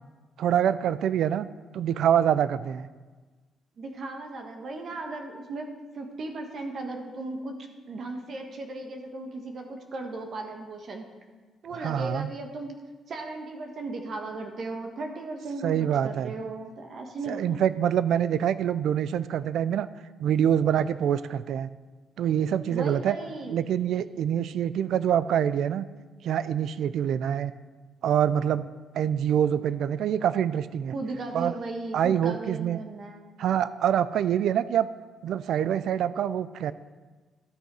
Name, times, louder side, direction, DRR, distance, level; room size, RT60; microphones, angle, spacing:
voice 1, 0.4-1.5 1.7-2.9 11.8-12.3 15.6-16.3 17.3-19.9 20.2-21.7 22.2-23.2 23.5-25.9 26.2-27.5 28.0-28.7 28.9-30.9 31.3-31.5 31.9-32.8 33.4-34.9 35.2-36.7, right 9 dB, 75° right, 15 dB, 0.4 m, -25 dB
voice 2, 3.8-5.7 5.9-7.5 7.9-11.1 11.6-12.7 13.1-17.6 22.7-23.6 30.9-33.2, right 2 dB, 55° right, 3 dB, 1.4 m, -36 dB
12.5 x 6.5 x 4.8 m, 1.3 s
cardioid pair, 90°, 0 cm